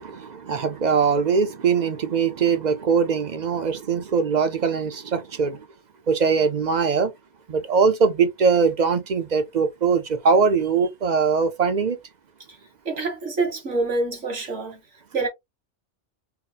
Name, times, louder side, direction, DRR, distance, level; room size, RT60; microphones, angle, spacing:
voice 1, 0.0-5.6 6.1-7.1 7.5-12.0, right 5 dB, 50° right, 0.5 m, -21 dB
voice 2, 12.9-14.8 15.1-15.3, right 3 dB, 80° right, 1.8 m, -26 dB
3.8 x 2.0 x 4.0 m
omnidirectional pair, 1.2 m